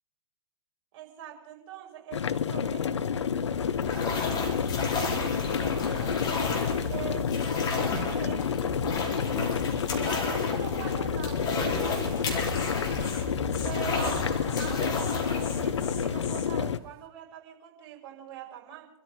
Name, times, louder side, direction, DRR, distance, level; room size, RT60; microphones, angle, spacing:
voice 1, 0.9-3.1 5.5-6.2 6.9-8.4 9.9-12.5 13.6-14.2 14.6-18.9, right 10 dB, 50° right, 1 dB, 5.7 m, -43 dB
sound 1, 2.1-16.8, left 7 dB, 75° left, 0.7 m, -29 dB
sound 2, 3.1-16.9, left 2 dB, 30° left, 4.1 m, -33 dB
Insect, 12.1-12.3 12.5-12.7 13.0-13.2 13.5-13.7 14.0-14.2 14.5-14.7 15.0-16.5, left 7 dB, 45° left, 3.1 m, -42 dB
27.5 x 13.5 x 3.9 m, 0.74 s
figure-of-eight pair, 100°, 15 cm